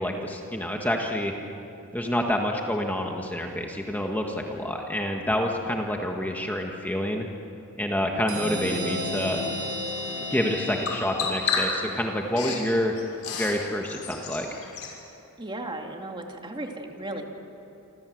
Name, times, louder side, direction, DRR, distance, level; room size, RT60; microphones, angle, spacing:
voice 1, 0.0-1.3 1.9-7.3 7.8-9.4 10.3-12.9 13.3-14.5, left 1 dB, 10° left, 1 dB, 1.6 m, -28 dB
sound 1, 8.3-11.8, left 1 dB, 85° right, 6.9 m, -33 dB
Bird vocalization bird call bird song, 9.3-15.0, left 4 dB, 70° left, 6.3 m, -33 dB
voice 2, 15.4-17.2, right 1 dB, 20° right, 2 dB, 2.5 m, -35 dB
28.5 x 26.0 x 7.9 m, 2.9 s
head